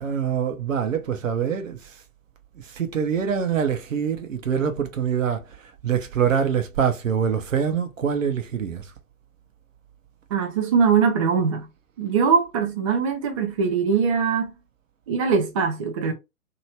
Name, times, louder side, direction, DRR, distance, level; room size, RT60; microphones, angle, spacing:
voice 1, 0.0-1.9 2.6-5.4 5.8-8.8, right 7 dB, 60° right, 1.0 m, -24 dB
voice 2, 10.3-11.7 12.0-14.5 15.1-16.1, right 6 dB, 25° right, 0.5 m, -22 dB
3.1 x 2.9 x 2.8 m
figure-of-eight pair, 115°, 43 cm